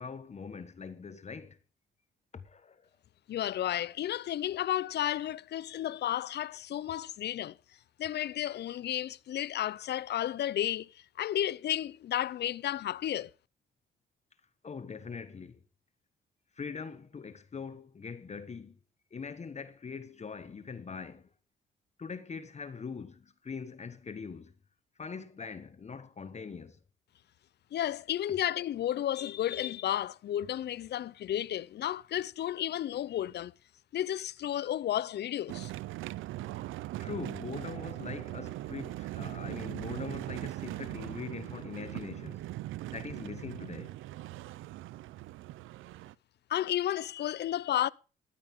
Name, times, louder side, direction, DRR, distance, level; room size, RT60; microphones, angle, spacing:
voice 1, 0.0-1.6 2.3-2.9 14.6-15.6 16.5-18.8 19.1-21.3 22.0-24.5 25.0-26.8 37.0-42.4 42.9-43.9, left 5 dB, 35° left, 1.3 m, -42 dB
voice 2, 3.3-7.6 8.0-10.9 11.2-13.3 27.7-33.5 33.9-35.7 46.5-47.9, left 12 dB, 55° left, 0.6 m, -32 dB
sound 1, 35.5-46.1, right 16 dB, 85° right, 0.5 m, -40 dB
14.0 x 13.0 x 3.7 m
cardioid pair, 90°, 20 cm